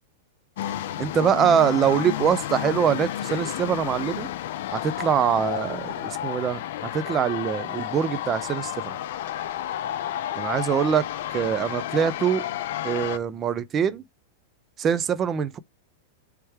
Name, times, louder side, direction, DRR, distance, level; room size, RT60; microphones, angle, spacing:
sound 1, 0.6-13.2, left 12 dB, 65° left, 0.5 m, -31 dB
voice 1, 1.0-4.3 4.7-9.0 10.4-11.1 11.3-12.5 12.8-14.0 14.8-15.6, right 8 dB, 20° right, 0.4 m, -24 dB
3.3 x 3.2 x 4.5 m
supercardioid pair, 155°, 0 cm